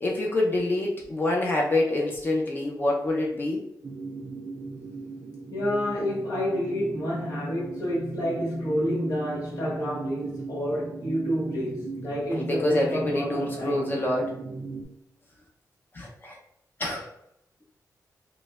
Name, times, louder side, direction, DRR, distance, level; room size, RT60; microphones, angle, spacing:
voice 1, 0.0-3.6 12.3-14.4 15.9-16.4 16.8-17.1, left 2 dB, 30° left, 0.5 m, -26 dB
sound 1, 3.8-14.8, right 4 dB, 35° right, 0.4 m, -39 dB
voice 2, 5.5-13.9, equal, 75° left, 1.3 m, -29 dB
4.9 x 2.1 x 2.2 m
wide cardioid pair, 170°, 6 cm